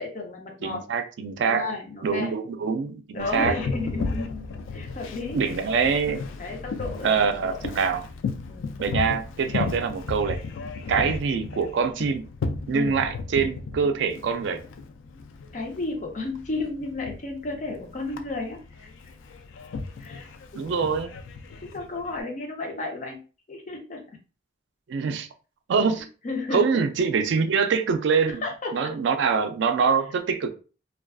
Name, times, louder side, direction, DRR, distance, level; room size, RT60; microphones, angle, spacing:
voice 1, 0.0-0.8 1.4-2.3 3.1-4.4 4.7-7.2 7.4-7.6 8.5-8.7 12.7-13.0 15.5-18.9 20.0-20.3 20.5-20.6 21.6-23.2 23.5-24.0 26.2-26.8 28.3-28.9, left 3 dB, 40° left, 0.6 m, -33 dB
voice 2, 0.6-1.7 2.0-3.6 5.3-6.2 7.0-8.1 8.8-10.4 10.9-12.3 12.7-14.6 20.5-21.1 24.9-25.3 25.7-26.1 26.5-28.4 28.7-30.5, right 5 dB, 65° right, 0.3 m, -24 dB
Boat Water vehicle, 3.2-22.2, left 4 dB, 80° left, 0.3 m, -35 dB
2.4 x 2.3 x 2.2 m
head